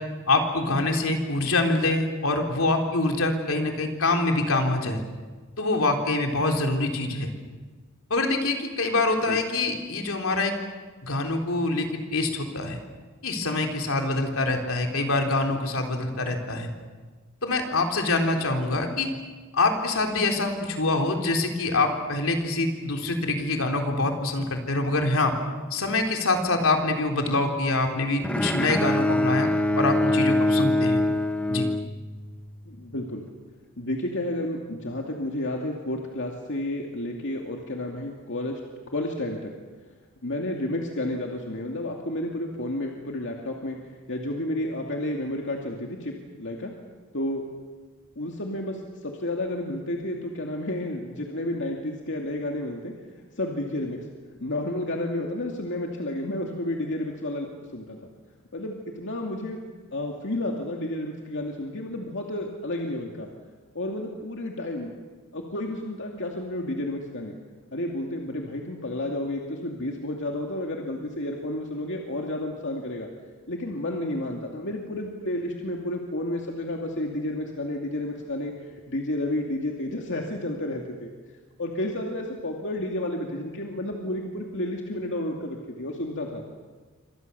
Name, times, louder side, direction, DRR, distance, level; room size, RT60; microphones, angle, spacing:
voice 1, 0.3-5.0 5.6-7.3 8.1-10.5 11.0-11.9 12.1-12.8 13.2-16.7 17.4-19.1 19.5-25.3 25.7-29.5 29.8-31.0 31.5-31.6, left 2 dB, 80° left, 3 dB, 3.7 m, -25 dB
Bowed string instrument, 28.2-32.5, left 1 dB, 5° left, 0.8 m, -24 dB
voice 2, 32.7-33.2 33.8-38.6 38.9-39.5 40.2-46.7 47.1-47.4 48.2-54.0 54.4-58.1 58.5-59.6 59.9-63.3 63.7-64.9 65.3-67.4 67.7-73.1 73.5-78.5 78.9-81.1 81.6-86.4, left 1 dB, 60° left, 1 dB, 2.5 m, -31 dB
28.5 x 25.5 x 7.0 m, 1.4 s
head